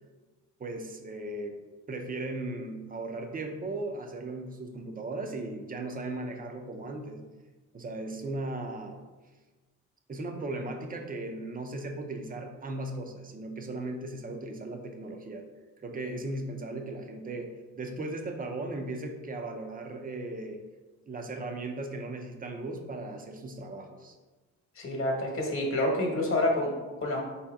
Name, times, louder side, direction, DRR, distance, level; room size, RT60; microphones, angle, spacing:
voice 1, 0.6-1.6 1.9-7.2 7.7-9.0 10.1-15.4 15.8-20.6 21.1-24.1, right 2 dB, 30° right, 4 dB, 0.5 m, -37 dB
voice 2, 24.8-26.7 27.0-27.2, left 1 dB, 45° left, 0 dB, 1.1 m, -28 dB
4.1 x 2.8 x 3.5 m, 1.2 s
cardioid pair, 90°, 30 cm